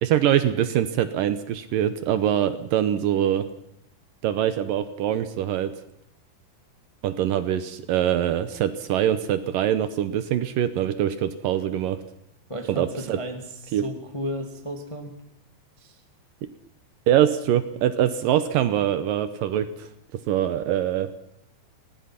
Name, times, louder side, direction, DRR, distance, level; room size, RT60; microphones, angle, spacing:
voice 1, 0.0-3.5 4.2-5.7 7.0-12.0 12.8-13.2 13.7-13.9 17.1-19.9 20.3-21.1, right 10 dB, 75° right, 11 dB, 2.4 m, -23 dB
voice 2, 12.5-15.1 15.8-16.0, equal, 15° left, 4 dB, 1.2 m, -34 dB
24.0 x 18.5 x 5.9 m, 0.78 s
omnidirectional pair, 4.5 m